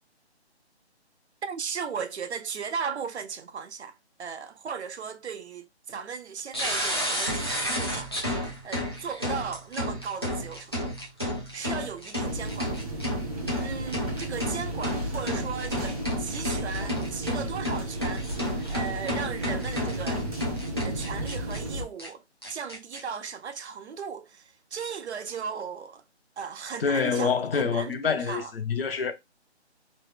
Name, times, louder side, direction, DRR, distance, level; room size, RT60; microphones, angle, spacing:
voice 1, 1.4-8.1 8.4-11.0 11.5-12.7 13.6-20.3 20.8-22.2 22.5-26.0 26.4-28.5, right 6 dB, 75° right, 0.6 m, -36 dB
sound 1, 6.5-21.6 22.0-22.1 22.4-23.0, left 1 dB, 25° left, 0.5 m, -32 dB
sound 2, 12.2-21.8, right 1 dB, 35° right, 0.6 m, -34 dB
voice 2, 26.8-29.1, left 5 dB, 60° left, 0.7 m, -26 dB
3.1 x 2.0 x 3.2 m
hypercardioid pair, 170°, 33 cm